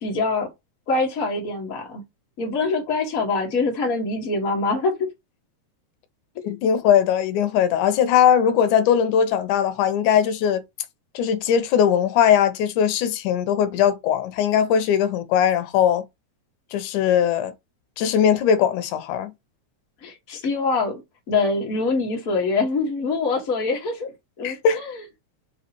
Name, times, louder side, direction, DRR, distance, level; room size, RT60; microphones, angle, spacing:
voice 1, 0.0-0.5 0.9-2.0 2.4-4.9 6.3-6.6 20.0-21.0 21.3-24.1 24.4-25.0, left 3 dB, 35° left, 1.6 m, -24 dB
voice 2, 6.4-10.6 11.2-16.0 16.7-17.5 18.0-19.3 24.4-24.8, left 8 dB, 90° left, 2.2 m, -20 dB
5.5 x 2.7 x 2.9 m
omnidirectional pair, 3.4 m